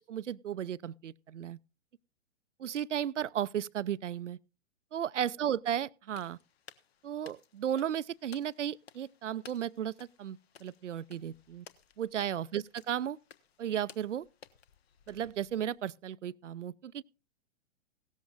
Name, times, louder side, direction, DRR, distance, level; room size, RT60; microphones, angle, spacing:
voice 1, 0.0-1.6 2.6-4.4 4.9-6.4 7.0-9.9 10.2-11.7 12.0-13.2 13.6-14.3 15.1-17.0, right 10 dB, 80° right, 0.5 m, -34 dB
sound 1, 6.1-15.8, left 8 dB, 55° left, 1.0 m, -58 dB
17.0 x 13.5 x 2.4 m
figure-of-eight pair, 115°, 36 cm